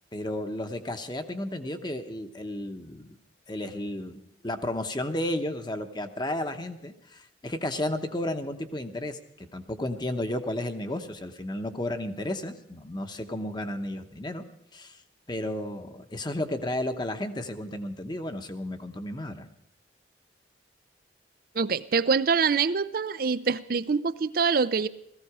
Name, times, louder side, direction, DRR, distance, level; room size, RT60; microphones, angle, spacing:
voice 1, 0.1-3.2 3.5-14.4 14.7-15.0 15.3-19.5, left 1 dB, 25° left, 7 dB, 0.9 m, -33 dB
voice 2, 21.5-24.9, right 5 dB, 50° right, 15 dB, 0.5 m, -25 dB
17.0 x 15.0 x 4.8 m, 0.77 s
head